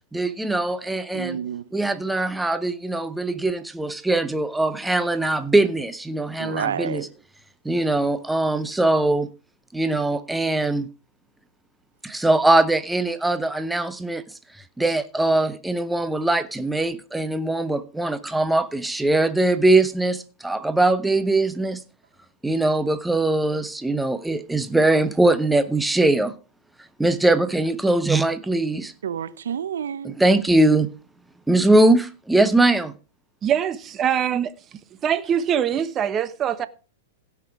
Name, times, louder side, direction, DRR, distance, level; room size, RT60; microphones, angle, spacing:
voice 1, 0.1-1.4 1.7-7.1 7.6-9.3 9.7-10.9 12.0-14.2 14.8-21.8 22.4-26.3 27.0-28.9 30.0-30.9 31.5-32.9, right 2 dB, 5° right, 0.8 m, -21 dB
voice 2, 1.1-1.6 6.4-7.1 29.0-30.1, right 8 dB, 75° right, 0.6 m, -29 dB
voice 3, 33.4-34.5 35.0-36.7, right 9 dB, 25° right, 1.1 m, -23 dB
16.5 x 5.9 x 4.8 m
hypercardioid pair, 120°, 0 cm